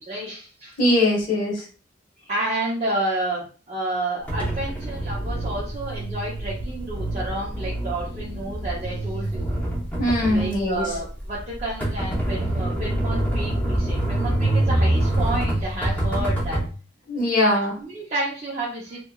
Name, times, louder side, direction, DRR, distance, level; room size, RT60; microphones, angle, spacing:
voice 1, 0.0-0.8 2.2-9.5 10.3-16.6 17.5-19.0, right 2 dB, 35° right, -7 dB, 0.6 m, -30 dB
voice 2, 0.8-1.6 10.0-10.9 17.1-17.7, left 1 dB, 45° left, -3 dB, 1.0 m, -21 dB
sound 1, 4.3-16.7, right 1 dB, 10° left, 0.7 m, -25 dB
2.8 x 2.3 x 2.3 m, 0.38 s
head